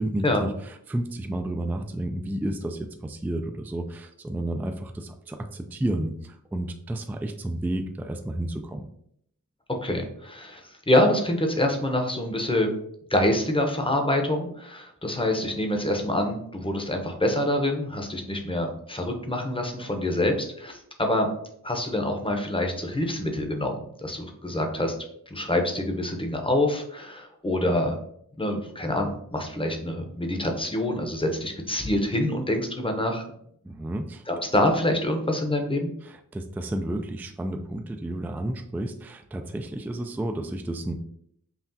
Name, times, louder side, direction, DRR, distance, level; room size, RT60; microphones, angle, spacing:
voice 1, 0.0-8.9 33.6-34.2 36.0-40.9, right 1 dB, 5° right, 6 dB, 0.3 m, -31 dB
voice 2, 9.8-12.7 13.1-21.3 21.6-24.9 25.3-28.0 28.4-33.3 34.3-35.9, left 1 dB, 15° left, 3 dB, 0.8 m, -26 dB
5.7 x 2.3 x 2.7 m, 0.69 s
wide cardioid pair, 55°, 33 cm